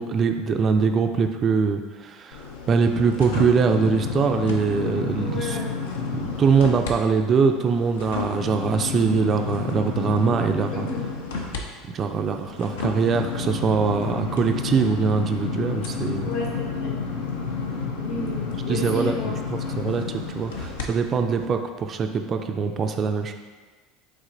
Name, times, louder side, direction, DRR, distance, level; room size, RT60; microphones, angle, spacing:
voice 1, 0.0-5.6 6.4-10.9 11.9-16.3 18.7-23.3, right 5 dB, 40° right, 6 dB, 0.3 m, -23 dB
sound 1, 2.3-6.9 7.3-20.8 21.3-21.5, left 5 dB, 75° left, 0.5 m, -30 dB
voice 2, 5.2-5.7 10.7-11.1 16.2-17.0 17.9-19.3, left 2 dB, 55° left, -3 dB, 1.1 m, -32 dB
5.1 x 3.5 x 2.6 m, 1.3 s
hypercardioid pair, 75°, 0 cm